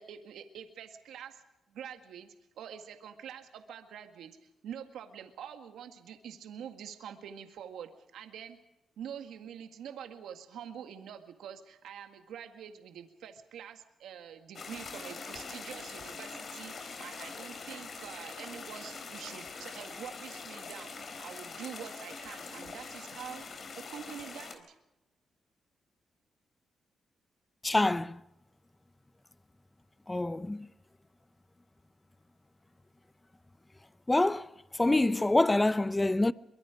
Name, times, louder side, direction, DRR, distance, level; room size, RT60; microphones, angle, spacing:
voice 1, 0.0-1.4 1.7-2.3 2.6-4.4 4.6-8.6 9.0-20.9 21.2-23.4 23.8-24.8, right 8 dB, 85° right, 1.9 m, -46 dB
sound 1, 14.5-24.5, left 4 dB, 55° left, 3.9 m, -43 dB
voice 2, 27.6-28.2 30.1-30.7 34.1-34.5 34.8-36.3, left 2 dB, 15° left, 0.7 m, -26 dB
23.5 x 23.0 x 5.1 m
cardioid pair, 80°, 0 cm